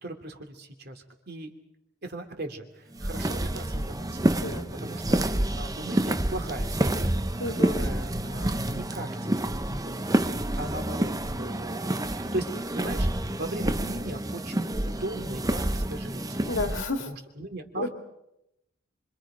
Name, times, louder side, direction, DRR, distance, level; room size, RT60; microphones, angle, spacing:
voice 1, 0.0-1.5 2.0-7.1 7.5-10.3 10.6-16.4 17.1-17.9, right 1 dB, 50° right, 4 dB, 2.9 m, -38 dB
sound 1, 2.9-16.8, right 1 dB, 15° right, 0.8 m, -28 dB
voice 2, 4.4-4.7 7.4-7.8 16.5-17.1 17.8-17.9, left 2 dB, 60° left, 5 dB, 2.3 m, -30 dB
26.5 x 26.0 x 5.1 m, 0.84 s
head